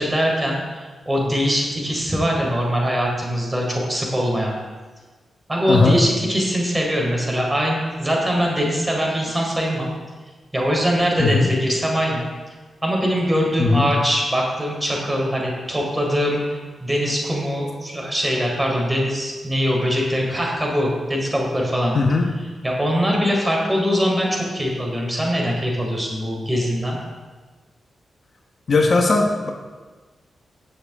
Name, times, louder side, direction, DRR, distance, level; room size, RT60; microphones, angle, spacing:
voice 1, 0.0-4.6 5.5-9.9 10.5-12.3 12.8-21.9 22.6-27.0, equal, 15° right, -2 dB, 4.0 m, -22 dB
voice 2, 5.7-6.0 11.2-11.5 13.6-13.9 21.9-22.3 28.7-29.5, left 3 dB, 60° left, 2 dB, 1.2 m, -18 dB
16.5 x 7.0 x 3.7 m, 1.3 s
supercardioid pair, 45°, 0 cm